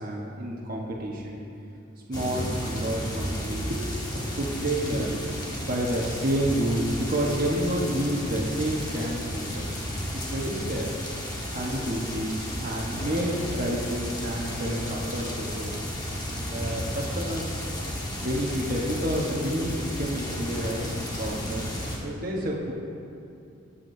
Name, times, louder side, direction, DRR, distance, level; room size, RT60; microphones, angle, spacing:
voice 1, 0.0-1.4 2.1-3.8 4.1-5.2 5.6-9.7 10.1-10.9 11.5-15.7 16.5-17.6 18.2-21.7 22.0-22.7, right 1 dB, 45° right, -3 dB, 1.3 m, -29 dB
sound 1, 2.1-22.0, equal, 20° left, 1.5 m, -33 dB
21.5 x 8.5 x 2.8 m, 2.6 s
head